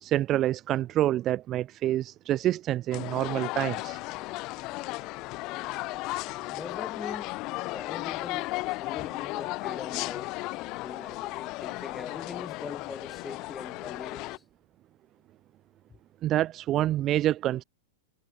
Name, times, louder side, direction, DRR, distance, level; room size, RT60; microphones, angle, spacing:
voice 1, 0.0-4.0 16.2-17.6, right 13 dB, 35° right, 0.8 m, -27 dB
sound 1, 2.9-14.4, left 22 dB, 45° left, 2.1 m, -35 dB
voice 2, 6.5-7.3 7.7-10.4 10.8-14.4, left 4 dB, 15° left, 2.1 m, -42 dB
hypercardioid pair, 120°, 0 cm